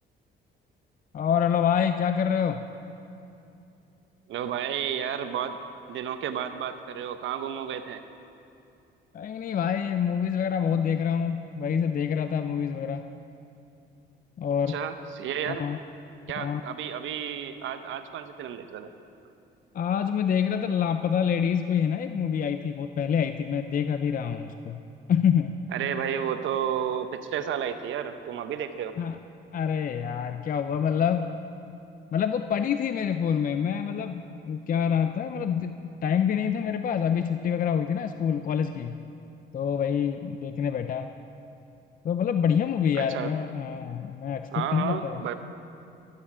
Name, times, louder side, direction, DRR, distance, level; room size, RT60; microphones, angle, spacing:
voice 1, 1.1-2.6 9.1-13.0 14.4-14.8 15.5-15.8 16.4-16.6 19.7-24.8 25.1-25.6 29.0-29.2 29.5-31.4 32.1-39.0 39.5-41.1 42.0-45.2, left 8 dB, 45° left, 8 dB, 0.5 m, -26 dB
voice 2, 4.3-5.6 5.9-8.0 14.7-15.6 16.3-18.9 25.7-29.0 43.0-43.3 44.5-45.4, right 9 dB, 75° right, 9 dB, 0.8 m, -32 dB
13.0 x 11.5 x 4.9 m, 2.7 s
cardioid pair, 90°, 20 cm